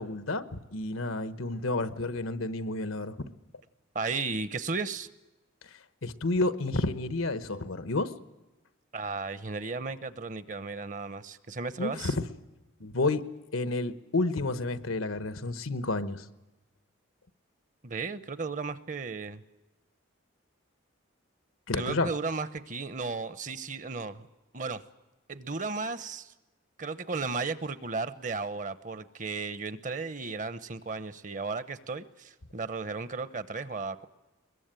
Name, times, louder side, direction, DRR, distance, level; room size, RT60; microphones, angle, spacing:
voice 1, 0.0-3.2 5.6-8.1 11.8-12.1 12.8-16.3 21.7-22.1, left 2 dB, 90° left, 12 dB, 1.2 m, -30 dB
voice 2, 3.9-5.1 8.9-12.1 17.8-19.4 21.7-24.3 24.5-24.8 25.3-26.3 26.8-34.1, right 4 dB, 40° right, 14 dB, 0.8 m, -35 dB
22.0 x 21.5 x 9.1 m, 1.1 s
head